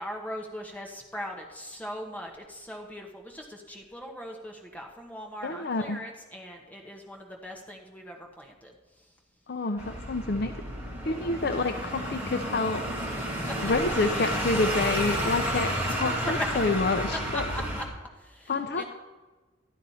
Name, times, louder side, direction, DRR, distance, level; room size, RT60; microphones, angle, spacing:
voice 1, 0.0-8.7 9.0-9.1 13.5-13.6 15.7-16.1 16.4-16.5 17.3-17.8 18.2-18.8, equal, 10° left, 0 dB, 1.2 m, -40 dB
voice 2, 5.4-6.0 9.5-10.5 11.0-12.8 13.6-17.4 18.5-18.8, left 3 dB, 55° left, 6 dB, 0.6 m, -28 dB
sound 1, 9.8-17.9, equal, 10° right, 2.1 m, -31 dB
13.5 x 11.5 x 4.2 m, 1.2 s
head